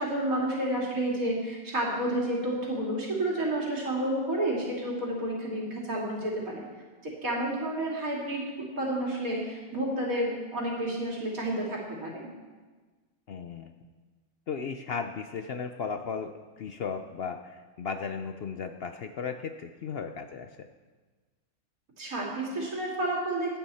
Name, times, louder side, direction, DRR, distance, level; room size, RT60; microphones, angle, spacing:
voice 1, 0.0-6.6 7.2-8.4 8.8-12.3 22.0-23.6, right 1 dB, 65° right, -3 dB, 3.1 m, -30 dB
voice 2, 13.3-13.7 14.5-16.3 16.6-20.7, left 6 dB, 60° left, 7 dB, 0.6 m, -35 dB
15.5 x 9.5 x 4.2 m, 1.3 s
omnidirectional pair, 1.6 m